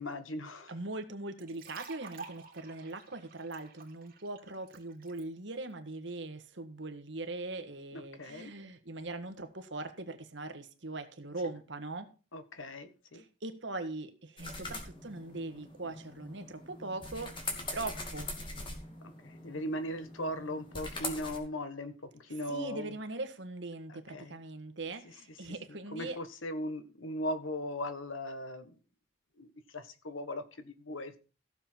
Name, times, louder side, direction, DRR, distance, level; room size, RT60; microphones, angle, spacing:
voice 1, 0.0-0.7 7.9-8.5 12.3-13.2 19.0-22.9 23.9-24.4 25.0-25.1 25.7-28.8 29.4-31.2, left 1 dB, 85° left, 1.4 m, -39 dB
voice 2, 0.7-12.1 13.1-18.3 22.5-26.2, right 2 dB, 65° right, 1.6 m, -41 dB
sound 1, 1.4-5.2, right 5 dB, 45° right, 2.7 m, -50 dB
sound 2, 14.4-21.4, left 2 dB, 25° left, 2.5 m, -42 dB
15.5 x 7.2 x 4.5 m
head